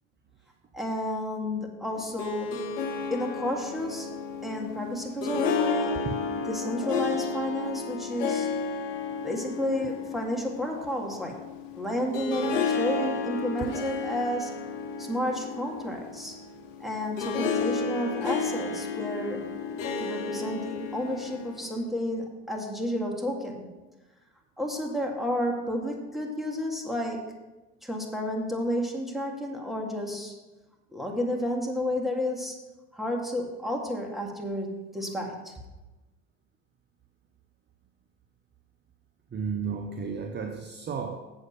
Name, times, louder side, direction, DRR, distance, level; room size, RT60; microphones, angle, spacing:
voice 1, 0.7-2.6 3.1-4.1 4.4-8.5 9.2-11.4 11.7-14.6 15.0-16.4 16.8-19.5 20.0-23.7 24.6-27.2 27.8-30.3 30.9-32.6 32.9-35.5, left 1 dB, ahead, 2.1 m, -31 dB
Harp, 2.0-21.8, left 5 dB, 80° left, 1.1 m, -32 dB
voice 2, 39.3-41.2, right 6 dB, 30° right, 0.8 m, -33 dB
7.8 x 7.2 x 5.8 m
hypercardioid pair, 80°, 37 cm